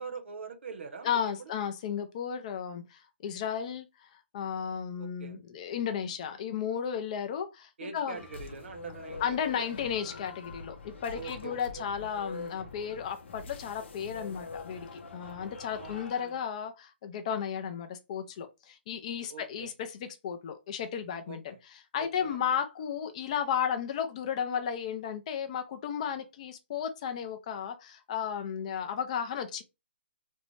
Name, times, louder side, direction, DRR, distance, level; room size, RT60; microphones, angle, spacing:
voice 1, 0.0-1.5 5.0-5.4 7.8-9.6 11.1-11.9 15.8-16.1 19.3-19.7 21.3-21.6 22.0-22.4, right 5 dB, 70° right, 0.7 m, -44 dB
voice 2, 1.0-8.2 9.2-21.5 21.9-29.6, left 8 dB, 35° left, 0.4 m, -34 dB
sound 1, 8.1-16.4, left 4 dB, 70° left, 0.6 m, -45 dB
2.6 x 2.1 x 3.0 m
hypercardioid pair, 160°, 7 cm